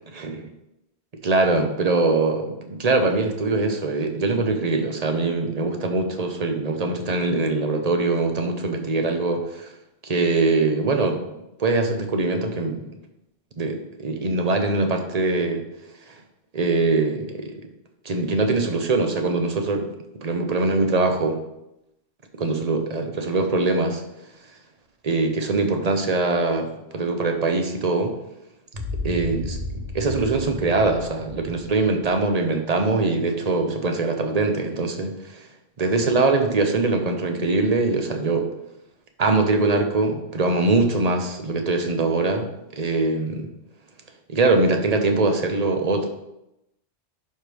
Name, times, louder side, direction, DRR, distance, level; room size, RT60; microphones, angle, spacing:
voice 1, 0.1-0.4 1.2-9.7 10.0-11.2 11.6-12.9 13.6-15.6 16.5-17.6 18.0-19.9 20.2-21.4 22.4-24.0 25.0-28.1 29.0-35.4 35.8-38.5 39.2-43.5 44.3-46.1, right 3 dB, 40° right, 5 dB, 0.9 m, -22 dB
sound 1, 28.7-33.1, left 2 dB, 60° right, 2.3 m, -34 dB
11.0 x 4.6 x 3.4 m, 0.89 s
omnidirectional pair, 1.1 m